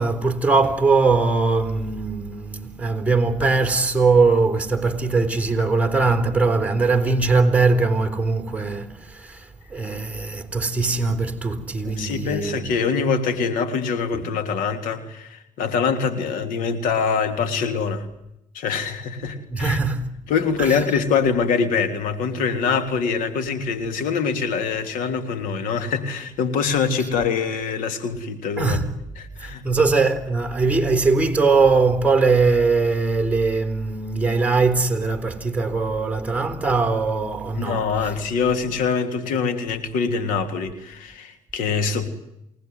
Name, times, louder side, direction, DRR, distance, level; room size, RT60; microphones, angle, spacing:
voice 1, 0.0-12.6 14.1-14.2 19.5-20.1 20.6-20.8 28.6-28.9 29.4-37.8, right 4 dB, 10° right, 3.9 m, -21 dB
voice 2, 11.8-18.0 18.5-19.8 20.3-28.8 29.2-29.6 37.5-42.1, left 5 dB, 85° left, 3.4 m, -24 dB
28.5 x 19.0 x 9.5 m
cardioid pair, 95°, 14 cm